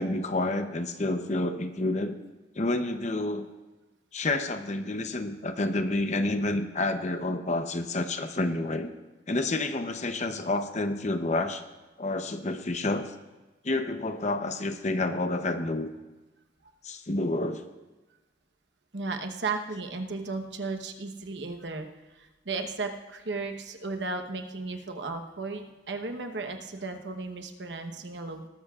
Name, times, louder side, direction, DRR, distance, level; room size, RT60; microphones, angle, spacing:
voice 1, 0.0-2.2 2.6-3.5 4.1-8.9 9.3-11.6 12.0-13.1 13.6-15.9 16.8-17.6, left 2 dB, 40° left, 8 dB, 0.8 m, -29 dB
voice 2, 18.9-28.5, right 3 dB, 75° right, 5 dB, 1.1 m, -35 dB
19.0 x 13.5 x 2.5 m, 1.1 s
head